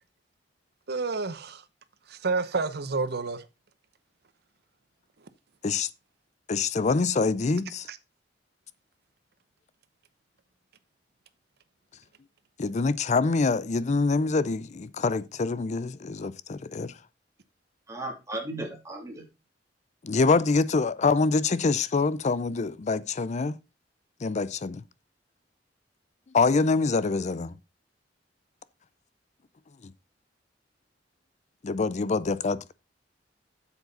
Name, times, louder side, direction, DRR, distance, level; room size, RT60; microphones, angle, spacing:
voice 1, 0.9-1.6 2.1-3.4 7.9-8.0, right 4 dB, 60° right, 0.9 m, -29 dB
voice 2, 6.5-7.9 12.6-16.9 20.0-23.6 24.2-24.8 26.3-27.5 29.8-29.9 31.6-32.7, left 4 dB, 40° left, 0.5 m, -25 dB
voice 3, 17.9-19.2, right 1 dB, 20° right, 2.8 m, -35 dB
7.9 x 7.3 x 4.0 m
head